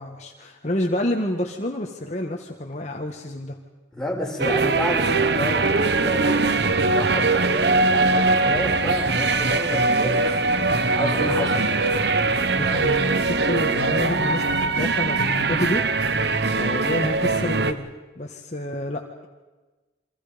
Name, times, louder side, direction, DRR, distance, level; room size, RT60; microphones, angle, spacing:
voice 1, 0.0-3.6 11.4-11.5 12.5-17.9 18.2-19.3, left 1 dB, 40° left, 1 dB, 1.8 m, -29 dB
voice 2, 3.9-10.2 10.7-11.9, left 1 dB, 5° left, -2 dB, 5.2 m, -30 dB
sound 1, 4.4-17.7, right 3 dB, 60° right, 1.2 m, -21 dB
29.0 x 25.0 x 5.2 m, 1.2 s
head